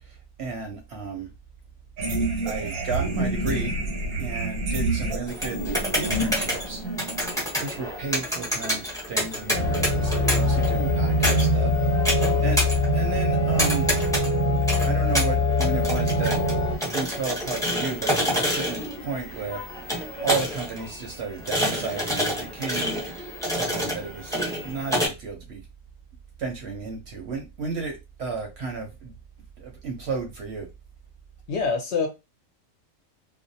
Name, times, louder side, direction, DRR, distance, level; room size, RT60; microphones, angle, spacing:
voice 1, 0.4-1.3 2.5-3.7 4.2-5.6 6.0-6.8 7.6-11.7 12.4-12.6 12.9-13.9 14.8-16.3 16.9-19.6 20.2-23.0 23.5-25.6 26.4-29.1 29.6-30.7, right 4 dB, 60° right, 0.7 m, -33 dB
sound 1, 2.0-7.3, right 2 dB, 90° right, 1.2 m, -28 dB
sound 2, 5.3-25.1, equal, 5° left, 0.6 m, -29 dB
sound 3, 9.5-16.8, left 1 dB, 85° left, 0.3 m, -23 dB
voice 2, 12.2-12.6 31.5-32.1, left 4 dB, 65° left, 0.7 m, -27 dB
2.4 x 2.0 x 2.6 m
omnidirectional pair, 1.5 m